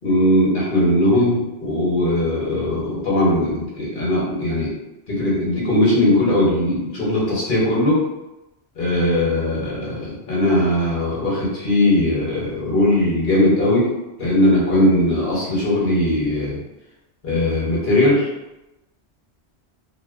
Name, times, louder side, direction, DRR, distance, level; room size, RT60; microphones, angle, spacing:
voice 1, 0.0-4.7 5.1-8.0 8.8-13.9 14.2-16.6 17.2-18.3, left 1 dB, 50° left, -5 dB, 0.9 m, -19 dB
2.5 x 2.0 x 2.4 m, 0.96 s
omnidirectional pair, 1.2 m